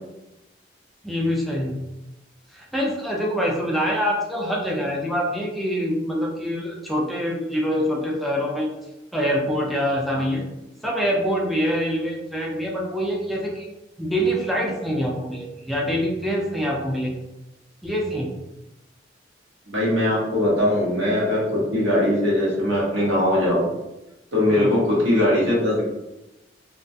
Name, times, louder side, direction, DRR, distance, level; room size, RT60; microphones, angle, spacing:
voice 1, 1.0-1.8 2.5-8.7 9.1-10.4 10.8-13.7 14.0-17.3 17.8-18.3 24.5-24.7, equal, ahead, -3 dB, 0.3 m, -25 dB
voice 2, 19.7-23.7 24.3-25.8, left 1 dB, 85° right, -6 dB, 1.1 m, -20 dB
2.3 x 2.2 x 2.6 m, 0.97 s
head